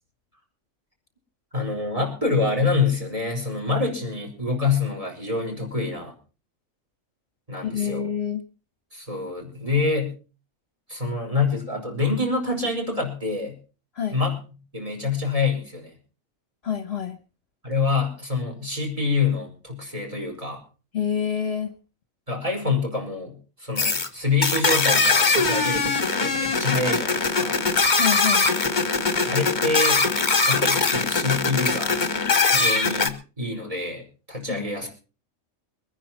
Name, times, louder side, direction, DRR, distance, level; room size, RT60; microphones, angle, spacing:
voice 1, 1.5-6.1 7.5-8.1 8.9-10.1 10.9-13.6 14.1-14.4 14.7-15.9 17.6-20.6 22.3-27.6 29.2-30.0 30.4-32.0 32.5-34.9, left 4 dB, 25° right, 2 dB, 5.2 m, -26 dB
voice 2, 7.6-8.4 13.9-14.2 16.6-17.2 20.9-21.7 28.0-28.5 34.5-34.7, left 8 dB, 55° left, 9 dB, 1.3 m, -27 dB
sound 1, 23.8-24.1 24.4-33.1, left 4 dB, 35° left, 1.5 m, -21 dB
23.0 x 10.0 x 4.3 m, 0.35 s
omnidirectional pair, 1.4 m